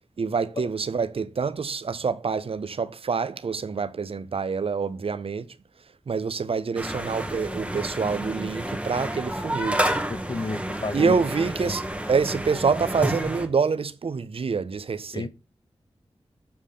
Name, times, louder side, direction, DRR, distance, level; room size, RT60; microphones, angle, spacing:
voice 1, 0.2-5.5 6.1-9.8 10.9-15.3, right 5 dB, 60° right, 0.6 m, -26 dB
sound 1, 6.8-13.5, right 1 dB, 10° right, 1.6 m, -30 dB
voice 2, 10.3-11.2 11.6-11.7 15.1-15.3, left 3 dB, 45° left, 0.7 m, -31 dB
7.1 x 6.4 x 3.6 m
cardioid pair, 50°, 11 cm